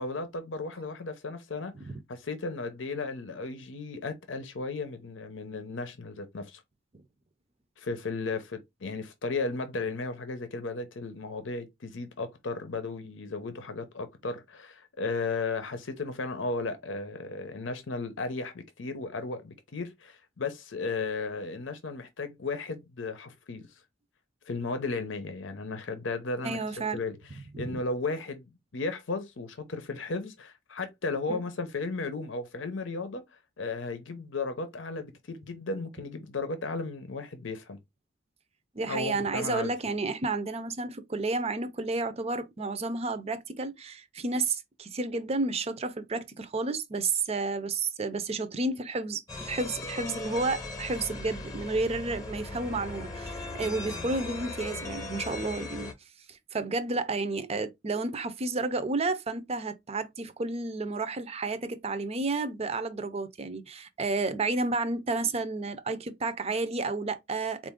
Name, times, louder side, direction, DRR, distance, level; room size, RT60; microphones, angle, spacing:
voice 1, 0.0-1.7 2.1-6.6 7.8-23.7 24.5-26.6 26.9-27.2 27.6-33.2 33.6-37.8 38.9-39.7, left 3 dB, 85° left, 0.7 m, -35 dB
voice 2, 26.4-27.0 27.5-27.8 31.3-31.4 38.7-55.9 56.3-67.7, right 3 dB, 35° right, 0.5 m, -31 dB
sound 1, 49.3-55.9, left 2 dB, 20° left, 0.8 m, -38 dB
4.1 x 2.5 x 3.6 m
head